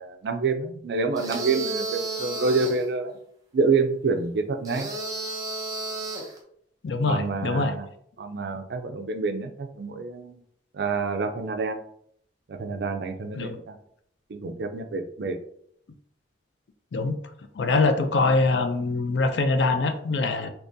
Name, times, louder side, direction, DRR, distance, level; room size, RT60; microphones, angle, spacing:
voice 1, 0.0-3.2 3.5-4.9 7.1-7.9 8.2-10.4 10.7-11.8 12.5-13.8 14.3-15.4, right 4 dB, 65° right, 7 dB, 0.4 m, -27 dB
sound 1, 1.2-2.9 4.6-6.4, right 2 dB, 20° right, 0.6 m, -32 dB
voice 2, 6.8-7.7 13.4-13.6 16.9-17.2 17.6-20.5, left 3 dB, 75° left, 8 dB, 0.4 m, -23 dB
3.6 x 2.9 x 2.6 m, 0.68 s
head